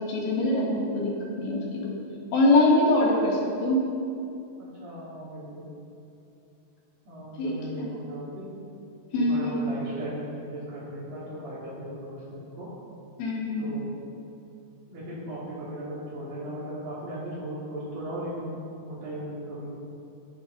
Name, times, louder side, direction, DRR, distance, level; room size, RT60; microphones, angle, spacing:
voice 1, 0.0-1.9 2.3-3.9 7.4-7.9 9.1-9.8 13.2-13.8, left 2 dB, 80° left, -3 dB, 3.9 m, -24 dB
voice 2, 4.6-5.7 7.0-8.5 9.1-12.7 13.6-13.9 14.9-19.8, right 1 dB, 80° right, -10 dB, 5.0 m, -37 dB
20.0 x 7.9 x 5.5 m, 2.6 s
omnidirectional pair, 4.0 m